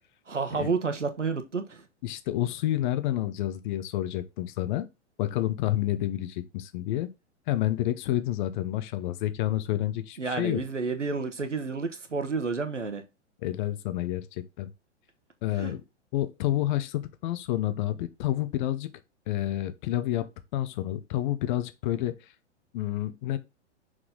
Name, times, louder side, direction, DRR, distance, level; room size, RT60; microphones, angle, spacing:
voice 1, 0.3-1.9 10.2-13.0 15.5-15.7, right 4 dB, 90° right, 1.3 m, -30 dB
voice 2, 2.0-4.9 5.2-7.1 7.5-10.6 13.4-14.7 15.4-15.8 16.1-18.9 19.3-22.2 22.7-23.4, left 14 dB, 45° left, 0.9 m, -29 dB
6.3 x 4.7 x 3.8 m
figure-of-eight pair, 105°, 35 cm